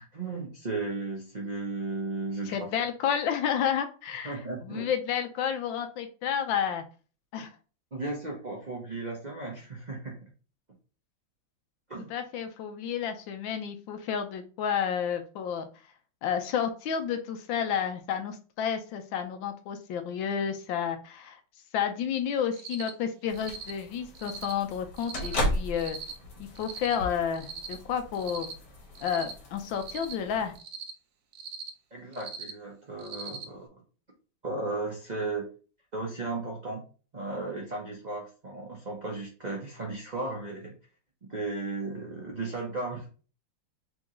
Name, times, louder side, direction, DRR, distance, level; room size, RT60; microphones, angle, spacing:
voice 1, 0.0-2.7 4.2-4.9 7.9-10.2 11.9-12.1 31.9-33.7 34.4-35.5 35.9-36.8 37.1-40.7 41.3-43.1, right 3 dB, 55° right, -2 dB, 0.4 m, -35 dB
voice 2, 2.5-4.4 4.6-6.8 7.3-7.5 12.1-15.7 16.2-21.4 21.7-26.0 26.4-28.5 29.0-30.5, left 8 dB, 75° left, 7 dB, 1.3 m, -31 dB
Cricket, 22.5-22.9 23.3-23.7 24.1-24.5 25.0-25.3 25.7-26.1 26.6-26.9 27.3-27.7 28.1-28.5 28.9-29.3 29.7-30.1 30.6-30.9 31.3-31.7 32.1-32.5 33.0-33.4, right 6 dB, 70° right, 0.9 m, -40 dB
sound 1, 23.3-30.6, left 1 dB, 60° left, 1.6 m, -36 dB
3.6 x 3.0 x 3.7 m, 0.36 s
omnidirectional pair, 2.2 m